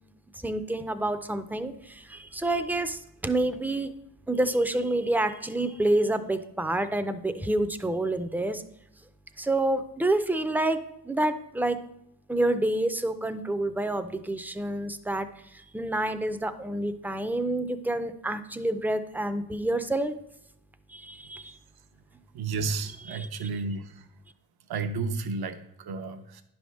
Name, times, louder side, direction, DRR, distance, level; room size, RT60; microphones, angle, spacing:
voice 1, 0.4-3.9 4.3-8.6 9.4-10.8 11.0-11.8 12.3-15.3 15.5-20.1 20.9-21.6 23.1-23.3, right 1 dB, 5° right, 9 dB, 0.4 m, -28 dB
voice 2, 22.3-24.1 24.7-26.4, right 4 dB, 80° right, 9 dB, 0.8 m, -32 dB
10.5 x 3.5 x 6.3 m, 0.77 s
wide cardioid pair, 155°, 37 cm